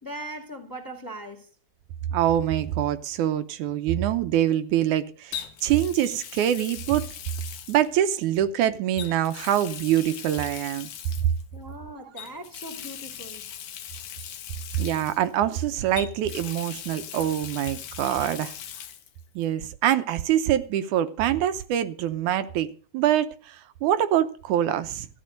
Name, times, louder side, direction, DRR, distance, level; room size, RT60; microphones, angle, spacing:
voice 1, 0.0-1.5 11.5-13.4, right 1 dB, 5° left, 2.1 m, -39 dB
voice 2, 2.1-7.1 7.7-10.9 14.8-18.5 19.4-25.1, right 11 dB, 80° right, 2.2 m, -25 dB
Water tap faucet, 2.4-2.6 5.3-8.4 8.9-11.4 12.2-15.6 16.0-19.1 19.4-19.5 21.1-21.2, left 9 dB, 80° left, 2.7 m, -40 dB
14.0 x 10.0 x 6.4 m
omnidirectional pair, 3.5 m